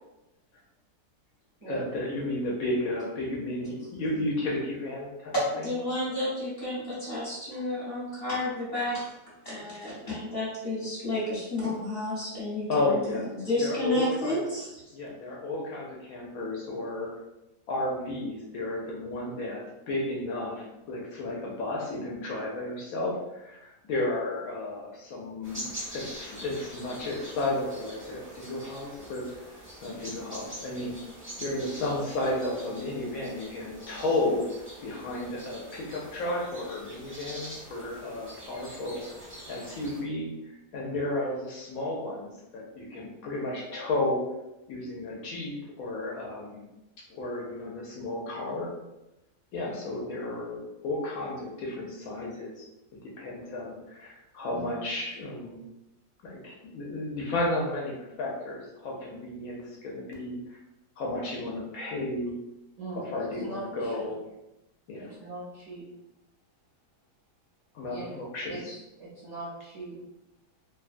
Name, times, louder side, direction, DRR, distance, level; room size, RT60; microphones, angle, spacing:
voice 1, 1.6-5.7 12.7-13.3 13.6-14.4 14.9-17.1 17.7-29.3 29.8-30.9 31.4-34.4 34.8-39.0 39.5-40.3 40.7-44.3 44.7-46.6 47.1-48.7 49.5-52.6 53.2-55.6 56.2-60.3 61.0-62.3 62.9-64.2 64.9-65.1 67.7-68.8, left 2 dB, 70° left, -2 dB, 0.9 m, -33 dB
voice 2, 5.3-9.1 9.4-13.1 13.3-14.8, left 1 dB, 40° left, -9 dB, 1.0 m, -31 dB
sound 1, 25.4-40.0, right 1 dB, 10° right, 0.6 m, -44 dB
voice 3, 63.4-64.0 65.2-65.8 67.9-68.2 68.5-70.0, right 3 dB, 60° right, -7 dB, 0.8 m, -40 dB
2.8 x 2.3 x 2.4 m, 0.95 s
omnidirectional pair, 1.8 m